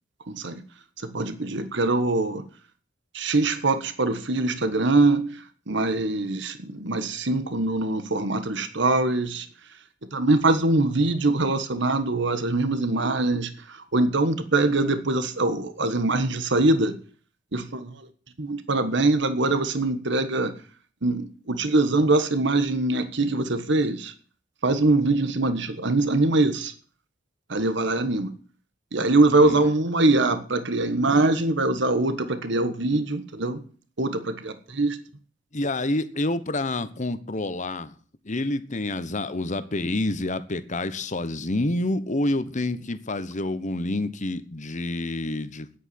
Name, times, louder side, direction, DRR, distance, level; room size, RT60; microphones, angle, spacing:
voice 1, 0.3-0.6 1.0-2.4 3.1-9.5 10.1-17.0 17.5-18.1 18.4-20.5 21.0-24.1 24.6-26.7 27.5-28.3 28.9-33.6 34.0-35.0, right 2 dB, 65° right, 1.4 m, -23 dB
voice 2, 29.4-29.7 35.5-37.9 38.2-45.7, left 2 dB, 40° left, 1.1 m, -28 dB
9.9 x 8.4 x 9.7 m
head